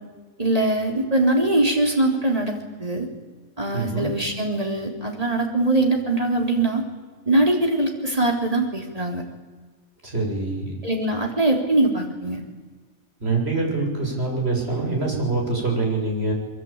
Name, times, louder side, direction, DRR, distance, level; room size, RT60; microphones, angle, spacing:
voice 1, 0.4-3.1 3.6-6.8 7.3-9.2 10.8-12.4, right 2 dB, 25° right, 1 dB, 3.7 m, -22 dB
voice 2, 3.7-4.1 10.0-10.7 13.2-16.3, right 3 dB, 45° right, 0 dB, 7.4 m, -24 dB
24.0 x 23.0 x 8.8 m, 1.4 s
omnidirectional pair, 1.4 m